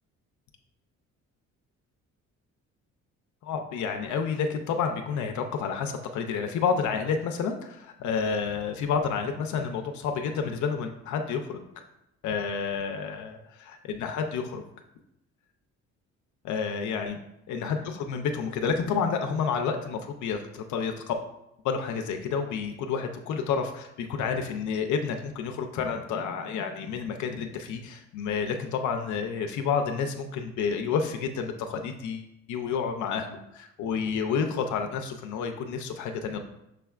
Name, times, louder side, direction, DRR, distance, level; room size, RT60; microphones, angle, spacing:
voice 1, 3.4-11.6 12.2-14.6 16.4-17.2 17.5-21.1 21.6-36.4, left 6 dB, 70° left, 5 dB, 0.5 m, -30 dB
6.2 x 3.3 x 2.4 m, 0.84 s
cardioid pair, 130°, 30 cm